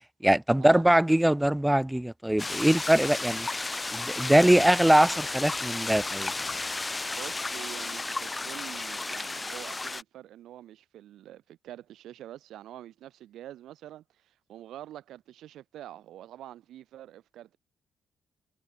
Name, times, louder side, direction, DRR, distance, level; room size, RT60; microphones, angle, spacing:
voice 1, 0.2-3.5 3.9-6.3, right 1 dB, 5° right, 0.8 m, -22 dB
sound 1, 2.4-10.0, left 3 dB, 20° left, 5.7 m, -33 dB
voice 2, 7.2-17.6, right 12 dB, 80° right, 7.8 m, -46 dB
cardioid pair, 90°, 0 cm